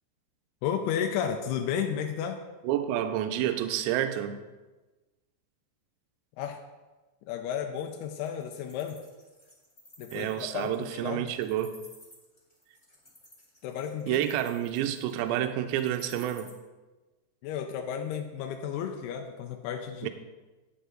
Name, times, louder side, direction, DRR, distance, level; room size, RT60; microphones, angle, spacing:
voice 1, 0.6-2.4 6.4-6.6 7.2-9.0 10.0-11.2 13.6-14.2 17.4-20.1, left 8 dB, 80° left, 4 dB, 2.5 m, -33 dB
voice 2, 2.6-4.4 10.1-11.7 14.1-16.5 20.0-20.1, right 11 dB, 85° right, 8 dB, 2.8 m, -29 dB
Wild animals, 7.9-16.5, equal, 15° left, 1.6 m, -55 dB
9.8 x 8.2 x 3.8 m, 1.2 s
omnidirectional pair, 5.1 m